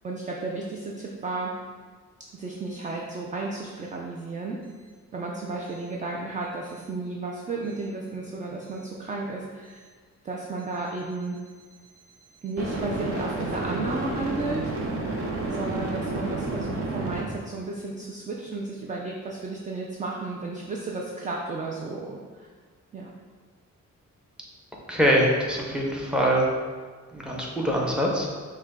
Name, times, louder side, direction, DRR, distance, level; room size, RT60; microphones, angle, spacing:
voice 1, 0.0-1.5 2.3-4.6 5.1-9.8 10.2-11.4 12.4-14.7 15.5-22.5 22.9-23.1, right 3 dB, 25° right, -2 dB, 0.4 m, -33 dB
sound 1, 7.7-7.9 12.6-17.2, right 2 dB, 50° right, 0.7 m, -30 dB
voice 2, 24.9-26.4 27.1-28.3, equal, 5° right, -3 dB, 0.8 m, -23 dB
5.9 x 2.2 x 3.6 m, 1.5 s
cardioid pair, 115°, 30 cm